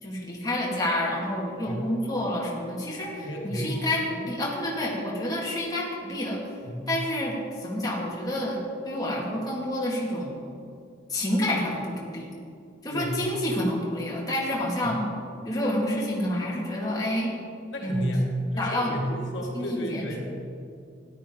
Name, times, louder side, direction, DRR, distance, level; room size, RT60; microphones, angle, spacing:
voice 1, 0.0-6.4 6.9-10.3 11.1-12.3 12.8-15.0 15.4-17.3 17.8-18.1 18.6-18.9 19.5-20.0, left 1 dB, 20° left, -5 dB, 2.2 m, -29 dB
voice 2, 3.2-3.9 6.6-7.1 12.9-13.3 14.8-15.0 17.7-20.2, equal, 75° left, -1 dB, 1.9 m, -31 dB
13.5 x 11.0 x 3.9 m, 2.4 s
head